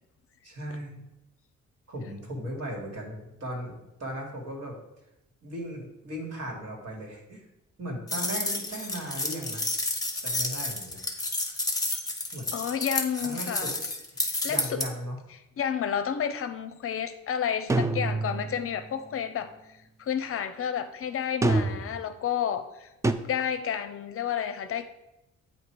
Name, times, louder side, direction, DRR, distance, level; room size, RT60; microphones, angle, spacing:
voice 1, 0.4-1.0 1.9-3.7 4.0-4.8 5.4-7.4 7.8-9.7 10.2-11.0 12.3-12.6 13.2-13.7 14.5-15.2, equal, 55° right, -1 dB, 1.9 m, -37 dB
sound 1, 8.1-14.9, left 2 dB, 10° left, 1.0 m, -30 dB
voice 2, 12.5-13.7 14.4-14.8 15.6-19.5 20.0-22.9 23.2-24.8, left 8 dB, 50° left, 10 dB, 0.6 m, -30 dB
sound 2, 17.7-18.7 21.4-22.0 23.0-23.1, right 2 dB, 10° right, 0.3 m, -26 dB
8.0 x 2.8 x 4.5 m, 0.90 s
cardioid pair, 90°, 30 cm